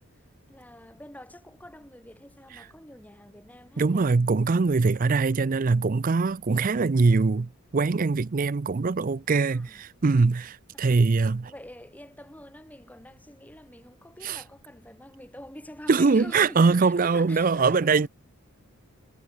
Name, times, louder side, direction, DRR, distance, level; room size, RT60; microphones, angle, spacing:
voice 1, 0.5-4.1 9.5-9.8 10.7-11.0 11.4-18.1, left 1 dB, 5° left, 5.0 m, -46 dB
voice 2, 3.8-11.5 14.2-14.4 15.9-18.1, right 4 dB, 40° right, 0.5 m, -22 dB
head